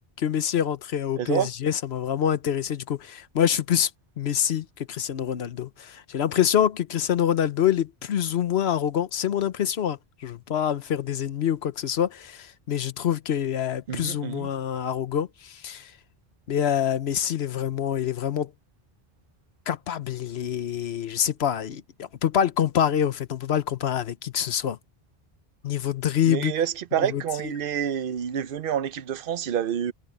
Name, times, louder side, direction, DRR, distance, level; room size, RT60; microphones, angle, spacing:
voice 1, 0.2-3.9 4.2-15.9 16.5-18.5 19.7-24.8 25.6-26.5 27.0-27.2, left 9 dB, 85° left, 1.1 m, -26 dB
voice 2, 1.2-1.5 13.9-14.5 26.2-29.9, right 9 dB, 65° right, 0.8 m, -28 dB
omnidirectional pair, 1.0 m